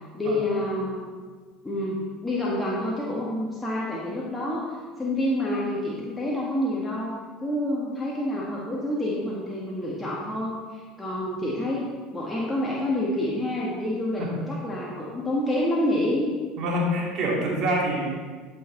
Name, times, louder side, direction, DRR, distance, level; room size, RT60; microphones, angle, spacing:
voice 1, 0.1-1.0 1.6-11.8 12.1-16.3, left 1 dB, 15° left, -5 dB, 1.8 m, -28 dB
voice 2, 16.6-18.3, equal, 55° right, -2 dB, 2.8 m, -26 dB
12.5 x 5.8 x 4.0 m, 1.5 s
hypercardioid pair, 70°, 0 cm